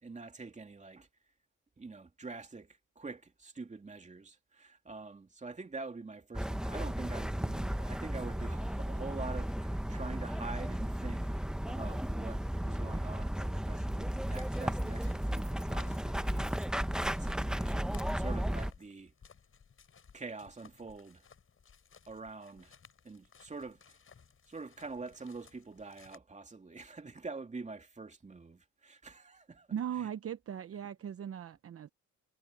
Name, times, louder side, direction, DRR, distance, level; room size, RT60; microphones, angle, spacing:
voice 1, 0.0-1.1 1.8-11.3 11.6-16.5 17.0-19.1 20.1-21.2 22.1-22.7 23.0-24.0 24.5-30.1, right 3 dB, 25° right, 2.7 m, -46 dB
sound 1, 6.3-18.7, equal, ahead, 1.1 m, -34 dB
sound 2, 14.3-26.2, left 6 dB, 45° left, 6.5 m, -61 dB
voice 2, 29.7-31.9, right 9 dB, 50° right, 0.9 m, -38 dB
cardioid pair, 90°, 30 cm